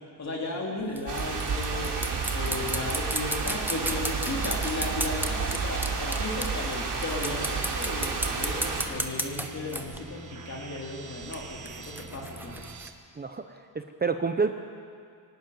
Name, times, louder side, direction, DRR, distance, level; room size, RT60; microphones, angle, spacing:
voice 1, 0.2-1.9 2.3-12.6, left 2 dB, 40° left, -1 dB, 3.3 m, -35 dB
sound 1, 0.8-6.7 7.0-10.0 11.2-12.9, right 1 dB, 5° right, 1.0 m, -35 dB
sound 2, 1.1-8.9, right 4 dB, 75° right, 3.3 m, -31 dB
sound 3, 7.4-12.9, right 3 dB, 45° right, 1.2 m, -45 dB
voice 2, 13.2-14.5, right 5 dB, 25° right, 6 dB, 0.7 m, -29 dB
23.5 x 12.0 x 9.4 m, 2.2 s
wide cardioid pair, 160°, 41 cm